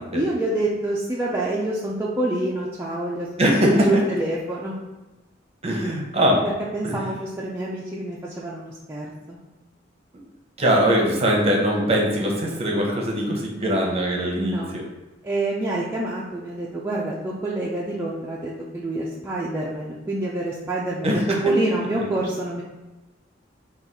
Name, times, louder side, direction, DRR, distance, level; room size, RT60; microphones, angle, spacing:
voice 1, 0.1-3.5 3.7-4.8 6.4-9.4 14.3-14.7 15.2-22.6, right 2 dB, 15° right, -6 dB, 0.4 m, -27 dB
voice 2, 3.4-3.9 5.6-6.4 6.8-7.0 10.6-14.8 21.0-21.4, equal, 35° right, 0 dB, 0.8 m, -21 dB
3.8 x 2.3 x 4.1 m, 1.1 s
head